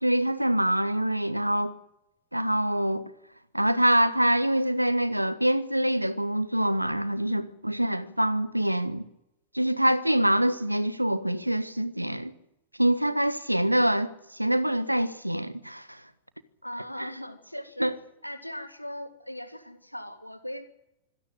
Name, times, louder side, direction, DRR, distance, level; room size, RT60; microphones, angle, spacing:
voice 1, 0.0-1.7 2.3-3.0 3.5-9.0 9.5-12.3 12.8-16.0 17.0-17.1 17.8-17.9, right 1 dB, 90° right, 1.3 m, -25 dB
voice 2, 7.3-7.7 16.6-17.9 18.2-20.7, equal, 90° left, 2.2 m, -39 dB
25.5 x 16.5 x 7.8 m
figure-of-eight pair, 90°, 0 cm